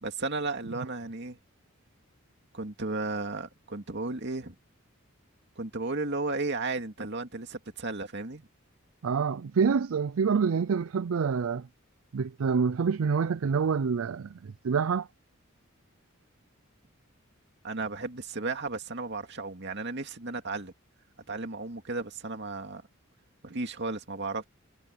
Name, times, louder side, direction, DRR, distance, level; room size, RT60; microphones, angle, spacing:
voice 1, 0.0-1.4 2.5-4.5 5.6-8.5 17.6-20.7 21.3-22.8 23.4-24.4, right 3 dB, 55° right, 2.4 m, -34 dB
voice 2, 9.0-11.7 12.1-15.1, right 6 dB, 75° right, 0.4 m, -27 dB
head